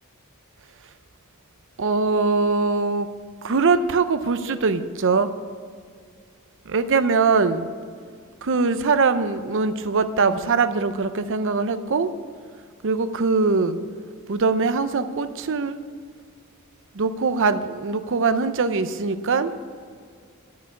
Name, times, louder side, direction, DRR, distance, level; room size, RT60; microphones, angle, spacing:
voice 1, 1.8-3.1 3.4-5.3 6.7-7.7 8.4-12.1 12.8-13.8 14.3-15.8 16.9-19.5, right 4 dB, 60° right, 11 dB, 0.6 m, -22 dB
10.5 x 6.2 x 8.4 m, 2.1 s
head